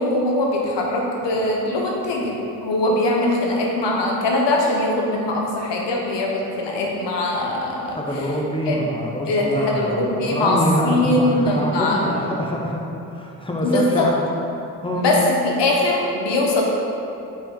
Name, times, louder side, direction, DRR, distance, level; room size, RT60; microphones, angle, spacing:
voice 1, 0.0-2.3 2.6-7.9 8.7-8.8 9.3-10.6 10.8-12.2 13.6-14.1 14.9-15.2 15.4-16.6, left 2 dB, 65° left, -1 dB, 1.3 m, -21 dB
voice 2, 7.9-12.8 13.1-14.2 14.8-15.1, equal, 10° left, -2 dB, 1.3 m, -25 dB
4.5 x 4.4 x 5.5 m, 2.8 s
hypercardioid pair, 45°, 46 cm